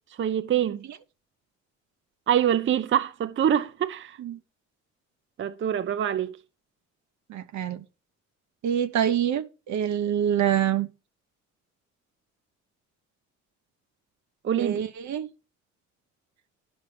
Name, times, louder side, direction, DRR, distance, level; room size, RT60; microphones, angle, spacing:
voice 1, 0.2-0.8 2.3-4.2 5.4-6.4 14.4-14.8, right 10 dB, 40° right, 0.6 m, -25 dB
voice 2, 7.3-7.8 8.6-10.9 14.6-15.3, right 9 dB, 70° right, 0.9 m, -26 dB
10.5 x 6.2 x 5.0 m
cardioid pair, 90°, 30 cm